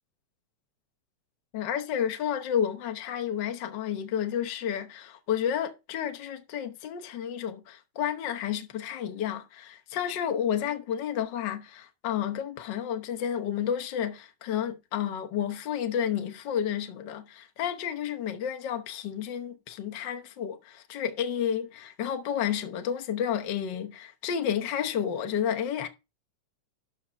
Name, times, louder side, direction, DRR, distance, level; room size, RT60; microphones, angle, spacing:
voice 1, 1.5-25.9, left 9 dB, 65° left, 1.1 m, -31 dB
13.0 x 4.3 x 5.7 m
omnidirectional pair, 3.4 m